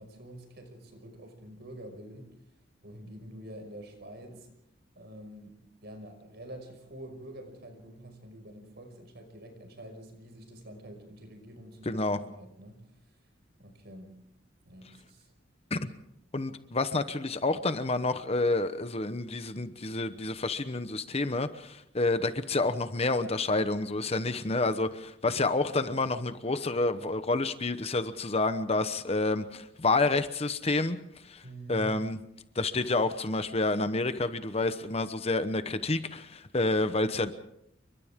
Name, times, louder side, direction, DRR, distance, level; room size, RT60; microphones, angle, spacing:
voice 1, 0.0-2.3 2.8-4.5 5.0-12.8 13.6-14.2 14.6-15.3 31.4-32.0, right 1 dB, 60° right, 6 dB, 5.6 m, -47 dB
voice 2, 11.9-12.2 15.7-15.9 16.3-31.4 31.7-32.2 32.5-37.3, left 2 dB, 30° left, 11 dB, 1.0 m, -29 dB
29.5 x 24.0 x 3.7 m, 0.75 s
head